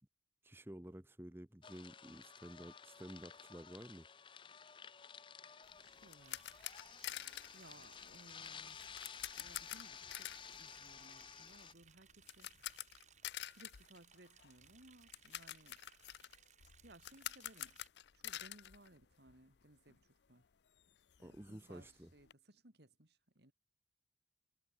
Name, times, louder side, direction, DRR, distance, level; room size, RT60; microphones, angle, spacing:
voice 1, 0.4-4.1 21.2-22.1, right 1 dB, 10° right, 0.8 m, -52 dB
sound 1, 1.6-11.7, left 7 dB, 25° left, 0.5 m, -54 dB
voice 2, 5.4-6.8 7.5-12.5 13.5-15.8 16.8-17.8 18.1-20.4 21.2-23.5, right 1 dB, 70° right, 3.6 m, -63 dB
sound 2, 5.6-19.6 19.9-20.0 20.4-20.5 20.8-22.3, left 13 dB, 75° left, 0.6 m, -49 dB
Liquid, 6.2-17.9, right 9 dB, 40° right, 1.5 m, -66 dB
head